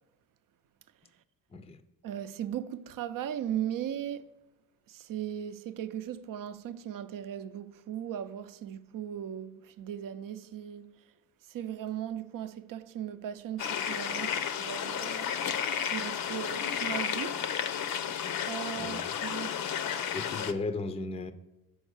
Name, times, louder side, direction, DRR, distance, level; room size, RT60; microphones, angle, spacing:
voice 1, 2.0-4.3 4.9-11.1 11.5-15.4 15.9-17.5 18.5-19.6, right 10 dB, 55° right, 0.6 m, -38 dB
sound 1, 13.6-20.5, left 8 dB, 60° left, 0.7 m, -32 dB
voice 2, 20.1-21.3, left 3 dB, 15° left, 0.5 m, -35 dB
6.4 x 4.5 x 6.4 m
supercardioid pair, 70°, 39 cm